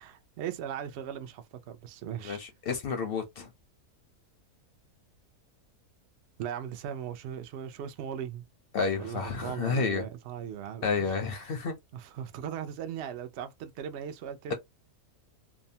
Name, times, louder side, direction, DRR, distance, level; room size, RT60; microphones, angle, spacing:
voice 1, 0.0-2.4 6.4-8.5 9.0-11.6 11.9-14.5, right 9 dB, 75° right, 0.6 m, -38 dB
voice 2, 2.2-3.5 8.7-10.0 10.8-11.7, left 5 dB, 60° left, 0.6 m, -30 dB
2.7 x 2.1 x 2.7 m
omnidirectional pair, 1.6 m